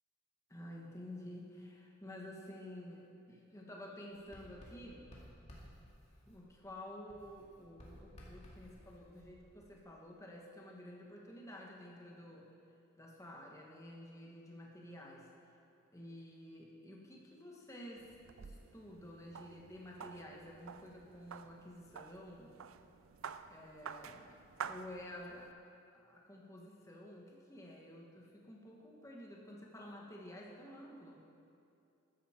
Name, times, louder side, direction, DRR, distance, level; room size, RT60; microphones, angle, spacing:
voice 1, 0.5-5.1 6.3-12.5 13.0-15.3 15.9-18.1 18.4-22.6 23.4-25.7 26.0-31.2, left 1 dB, 15° left, -2 dB, 1.3 m, -51 dB
Writing, 4.1-6.8 7.1-9.8, equal, 30° left, 2.2 m, -57 dB
sound 1, 18.0-25.5, right 6 dB, 65° right, 0.4 m, -50 dB
13.5 x 12.0 x 4.4 m, 2.7 s
head